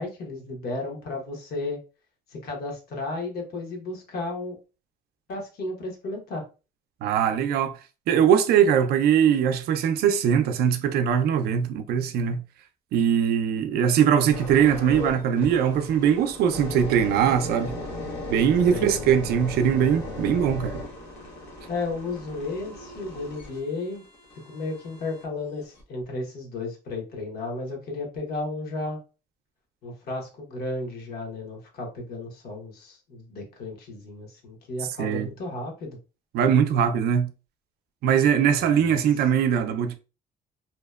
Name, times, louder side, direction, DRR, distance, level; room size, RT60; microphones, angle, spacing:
voice 1, 0.0-1.8 2.3-4.5 5.3-6.4 18.7-18.9 21.7-24.0 24.5-29.0 29.8-36.0 38.6-39.2, left 2 dB, 65° left, 1.0 m, -33 dB
voice 2, 7.0-7.7 8.1-12.4 12.9-17.7 18.3-20.8 35.0-35.3 36.3-37.3 38.0-40.0, right 8 dB, 70° right, 0.4 m, -21 dB
sound 1, 14.3-25.2 25.8-26.0, left 2 dB, 90° left, 0.9 m, -37 dB
2.7 x 2.1 x 2.3 m
cardioid pair, 110°, 17 cm